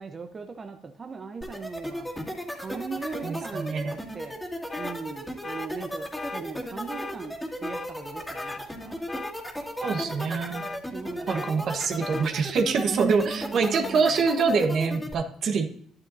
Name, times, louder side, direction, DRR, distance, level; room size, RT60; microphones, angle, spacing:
voice 1, 0.0-2.1 2.6-4.4 4.8-9.0 10.9-11.7 12.9-14.3, right 4 dB, 35° right, 5 dB, 0.8 m, -38 dB
sound 1, 1.4-15.1, equal, 5° left, 2.3 m, -35 dB
voice 2, 3.2-4.0 9.8-10.7 11.3-15.7, right 5 dB, 60° right, 6 dB, 1.2 m, -25 dB
sound 2, 4.7-5.0 5.4-5.7 6.2-6.4 6.9-7.2 7.6-7.9 8.3-8.6 9.1-9.3 9.8-10.1 10.5-10.8 11.3-11.5 12.0-12.3, left 3 dB, 25° left, 0.6 m, -37 dB
11.0 x 9.6 x 2.7 m, 0.64 s
supercardioid pair, 80°, 0 cm